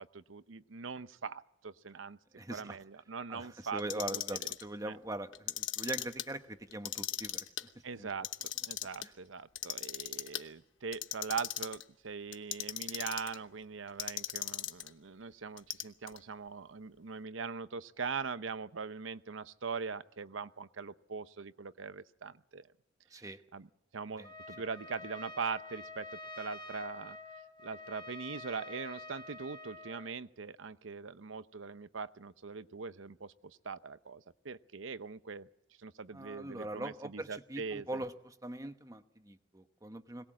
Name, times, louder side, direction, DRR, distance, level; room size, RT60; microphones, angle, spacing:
voice 1, 0.0-3.8 4.1-4.2 4.8-5.0 7.8-8.3 8.6-22.7 23.5-23.7 23.9-26.1 26.4-27.2 27.6-35.5 35.8-38.0, right 5 dB, 85° right, 14 dB, 0.8 m, -41 dB
voice 2, 2.3-2.8 3.3-7.7 8.0-8.1 9.0-9.1 23.1-23.4 24.2-24.3 36.1-40.3, right 1 dB, 15° right, 8 dB, 1.1 m, -42 dB
Clock, 3.8-4.6 5.3-6.2 6.7-7.6 8.1-9.0 9.6-10.4 10.9-11.8 12.3-13.4 14.0-14.9 15.6-16.2, left 12 dB, 75° left, 1.0 m, -38 dB
Trumpet, 24.2-30.1, left 1 dB, 20° left, 1.1 m, -47 dB
22.0 x 19.5 x 7.5 m, 0.77 s
head